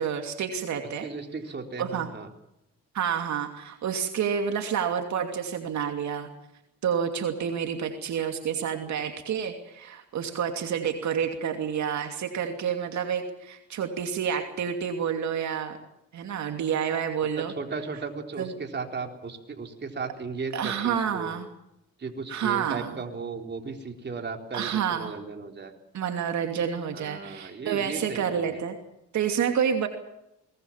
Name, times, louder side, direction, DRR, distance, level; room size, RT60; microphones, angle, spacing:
voice 1, 0.0-1.1 1.8-2.1 2.9-6.3 6.8-15.8 16.1-17.5 18.4-18.5 20.5-21.5 22.3-23.0 24.5-25.1 25.9-28.7 29.1-29.9, right 8 dB, 70° right, 5 dB, 2.7 m, -29 dB
voice 2, 1.0-2.3 17.3-21.3 22.0-25.7 26.9-28.6, right 4 dB, 35° right, 4 dB, 3.8 m, -36 dB
23.0 x 20.0 x 7.3 m, 0.85 s
cardioid pair, 90°, 30 cm